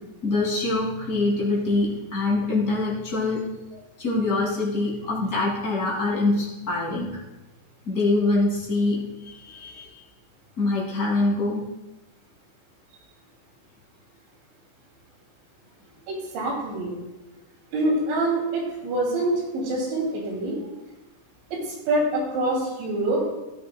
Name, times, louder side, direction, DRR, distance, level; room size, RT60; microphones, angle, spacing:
voice 1, 0.2-3.4 3.7-7.1 7.8-10.0 10.6-11.6, left 2 dB, 65° left, -4 dB, 0.9 m, -24 dB
voice 2, 16.1-17.0 17.7-20.6 21.5-23.3, right 2 dB, 75° right, -1 dB, 4.8 m, -25 dB
15.5 x 13.0 x 2.2 m, 1.0 s
omnidirectional pair, 5.4 m